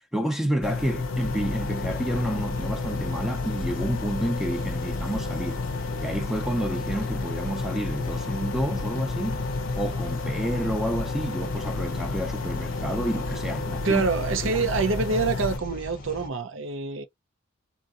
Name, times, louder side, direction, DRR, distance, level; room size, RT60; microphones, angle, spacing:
voice 1, 0.1-5.6 6.0-9.4 9.7-14.0, equal, ahead, 0.5 m, -29 dB
sound 1, 0.6-15.6, left 3 dB, 60° left, 0.6 m, -31 dB
sound 2, 1.2-16.3, left 2 dB, 40° left, 0.9 m, -39 dB
voice 2, 13.8-17.0, right 4 dB, 60° right, 0.6 m, -26 dB
3.7 x 2.4 x 2.5 m
head